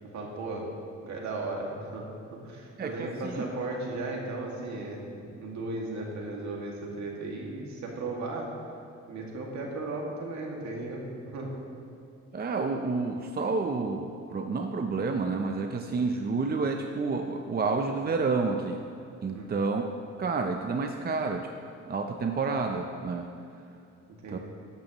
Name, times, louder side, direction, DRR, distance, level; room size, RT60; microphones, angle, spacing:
voice 1, 0.1-0.6 1.0-2.0 2.3-8.5 9.1-11.6 19.3-19.6 24.2-24.4, right 2 dB, 65° right, -1 dB, 2.3 m, -36 dB
voice 2, 2.8-3.5 12.3-18.8 19.2-19.8 20.2-21.5 21.9-23.3 24.3-24.4, right 4 dB, 30° right, 4 dB, 0.7 m, -29 dB
13.5 x 11.0 x 3.1 m, 2.6 s
cardioid pair, 90°, 30 cm